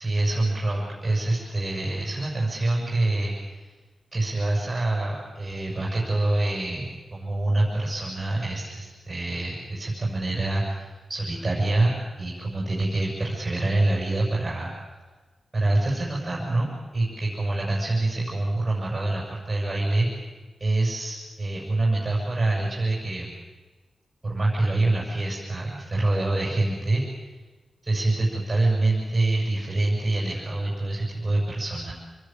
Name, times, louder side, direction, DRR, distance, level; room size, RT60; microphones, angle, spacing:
voice 1, 0.0-3.6 4.1-14.7 15.5-20.3 20.6-23.3 24.2-27.0 27.8-31.9, right 2 dB, 20° right, -4 dB, 6.8 m, -26 dB
27.0 x 20.0 x 9.1 m, 1.3 s
wide cardioid pair, 135°, 0 cm